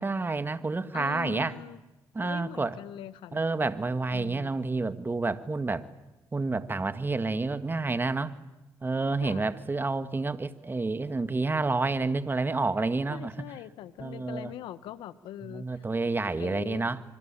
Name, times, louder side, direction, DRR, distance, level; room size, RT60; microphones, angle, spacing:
voice 1, 0.0-1.5 2.2-2.8 3.3-5.9 6.3-8.4 8.8-13.5 14.0-14.5 15.4-17.0, right 3 dB, 25° right, 12 dB, 1.7 m, -29 dB
voice 2, 0.9-1.8 2.2-3.6 4.1-4.5 9.2-9.5 13.1-15.8 16.4-16.9, left 12 dB, 85° left, 15 dB, 1.2 m, -42 dB
25.0 x 25.0 x 8.9 m, 1.0 s
supercardioid pair, 65°, 8 cm